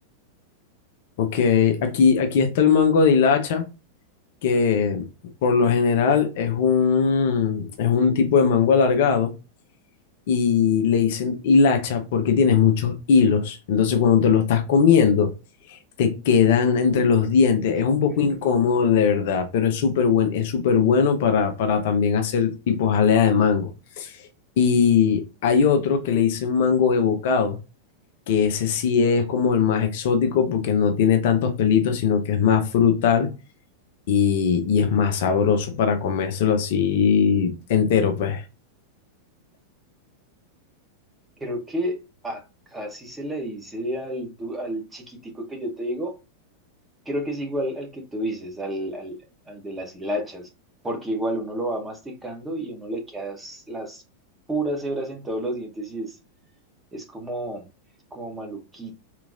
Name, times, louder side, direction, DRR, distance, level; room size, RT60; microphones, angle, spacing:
voice 1, 1.2-3.6 4.4-5.0 5.4-9.3 10.3-15.3 15.7-23.7 24.0-24.2 24.6-27.6 28.3-33.3 34.1-38.4, left 6 dB, 50° left, 0.7 m, -20 dB
voice 2, 41.4-42.0 42.2-42.4 42.7-46.1 47.1-49.2 49.5-50.5 50.8-54.0 54.5-56.2 56.9-57.6 58.1-59.0, right 1 dB, 10° right, 1.0 m, -30 dB
3.6 x 3.0 x 2.4 m
figure-of-eight pair, 90°, 0 cm